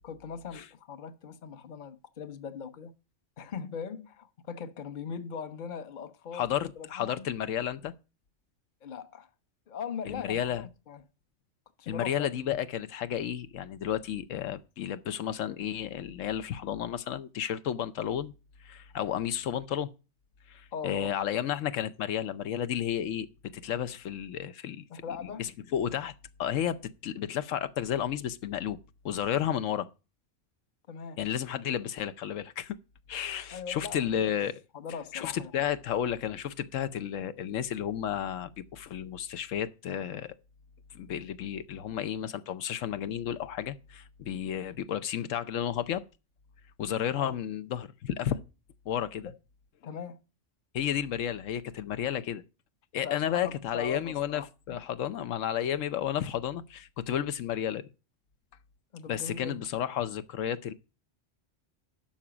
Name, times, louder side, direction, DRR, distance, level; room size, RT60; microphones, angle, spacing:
voice 1, 0.0-2.9 3.4-7.2 8.8-9.3 9.7-11.0 11.8-12.4 20.7-21.1 24.9-25.5 30.9-31.2 33.5-34.1 34.7-35.6 47.2-47.4 49.8-50.2 53.0-54.8 58.9-59.7, left 6 dB, 45° left, 0.9 m, -40 dB
voice 2, 6.3-7.9 10.1-10.6 11.9-18.3 18.6-19.9 20.5-23.3 23.5-24.8 25.2-26.1 26.4-28.8 29.0-29.9 31.2-32.8 33.1-34.6 35.1-40.3 40.9-46.0 46.8-48.4 48.9-49.3 50.7-52.4 52.9-54.4 54.7-57.9 59.1-60.7, left 10 dB, 85° left, 1.1 m, -32 dB
11.5 x 5.9 x 5.0 m
omnidirectional pair, 1.3 m